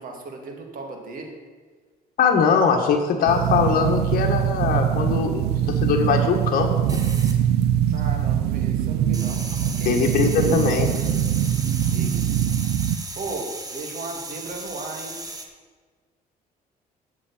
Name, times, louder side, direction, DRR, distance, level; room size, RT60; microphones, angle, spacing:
voice 1, 0.0-1.3 7.9-10.1 11.9-12.4 13.2-15.2, right 3 dB, 55° right, 2 dB, 2.4 m, -36 dB
voice 2, 2.2-5.5 5.8-6.7 9.8-10.9, left 6 dB, 60° left, 1 dB, 1.6 m, -21 dB
sound 1, 3.3-13.0, right 10 dB, 75° right, 0.6 m, -23 dB
sound 2, 6.9-8.1 8.4-15.4, right 2 dB, 20° right, 1.5 m, -36 dB
8.5 x 7.3 x 8.6 m, 1.5 s
cardioid pair, 110°, 17 cm